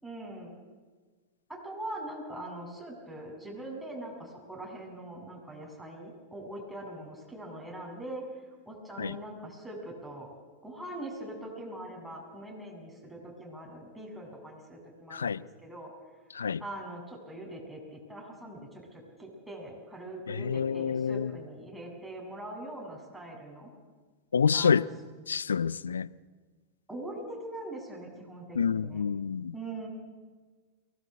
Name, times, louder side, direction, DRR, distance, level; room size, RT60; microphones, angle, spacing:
voice 1, 0.0-0.5 1.5-8.2 8.7-10.3 10.6-15.9 16.6-23.7 24.5-24.9 26.9-29.0 29.5-29.9, right 1 dB, ahead, 7.3 m, -42 dB
voice 2, 15.1-15.4 16.3-16.6 20.3-21.3 24.3-24.9 25.3-26.1 28.5-29.5, left 6 dB, 85° left, 0.6 m, -28 dB
23.0 x 18.5 x 8.3 m
hypercardioid pair, 100°, 0 cm